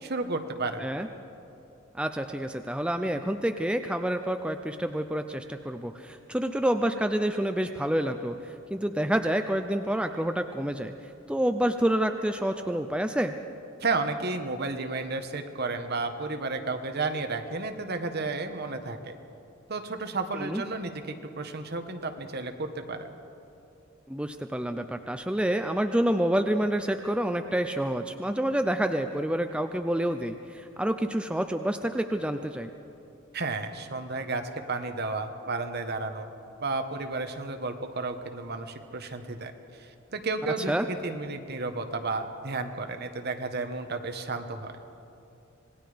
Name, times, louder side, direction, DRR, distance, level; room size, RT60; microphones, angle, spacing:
voice 1, 0.0-0.9 13.8-19.2 19.7-23.1 33.3-34.4 34.7-36.3 36.6-39.5 39.8-44.7, right 3 dB, 50° right, 6 dB, 1.4 m, -32 dB
voice 2, 1.9-8.4 8.7-10.9 11.3-13.3 20.4-20.6 24.1-32.7 40.7-40.9, right 1 dB, 5° right, 7 dB, 0.5 m, -28 dB
26.5 x 19.5 x 5.2 m, 2.7 s
head